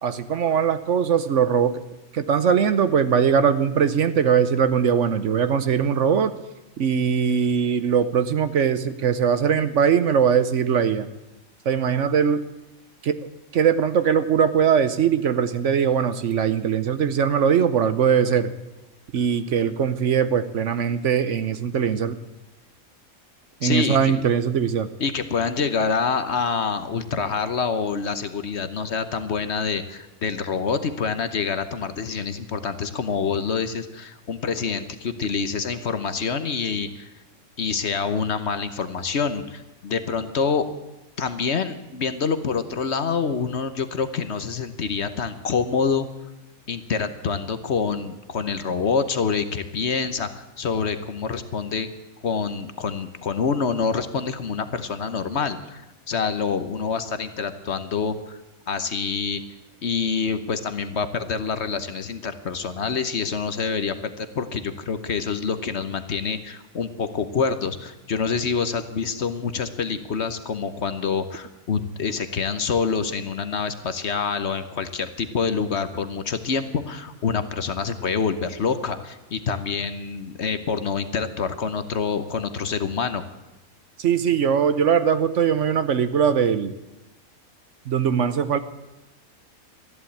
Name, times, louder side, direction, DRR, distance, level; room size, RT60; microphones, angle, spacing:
voice 1, 0.0-1.8 2.1-6.3 6.8-11.1 11.6-12.4 13.0-13.2 13.5-18.5 19.1-22.2 23.6-24.9 84.0-86.7 87.9-88.6, right 7 dB, 60° right, 12 dB, 1.0 m, -21 dB
voice 2, 23.6-24.2 25.0-37.1 37.6-40.7 41.2-46.1 46.7-51.9 52.2-55.8 56.1-58.4 58.7-59.4 59.8-83.2, left 5 dB, 55° left, 11 dB, 1.2 m, -26 dB
14.0 x 11.0 x 8.5 m, 1.0 s
omnidirectional pair, 1.5 m